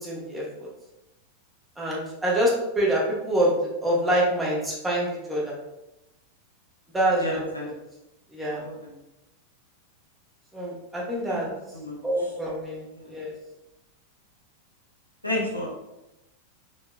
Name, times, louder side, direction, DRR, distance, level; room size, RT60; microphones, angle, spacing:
voice 1, 0.0-0.7 1.8-3.5 3.8-5.5 6.9-7.4 8.3-8.7 10.5-11.5 12.0-13.3, right 1 dB, 10° right, -4 dB, 1.1 m, -26 dB
voice 2, 7.2-7.6 8.4-8.9 11.2-11.4 11.7-12.0 12.9-13.1 15.2-15.7, left 1 dB, 85° left, -4 dB, 0.9 m, -31 dB
4.1 x 3.2 x 2.2 m, 0.92 s
figure-of-eight pair, 90°, 0 cm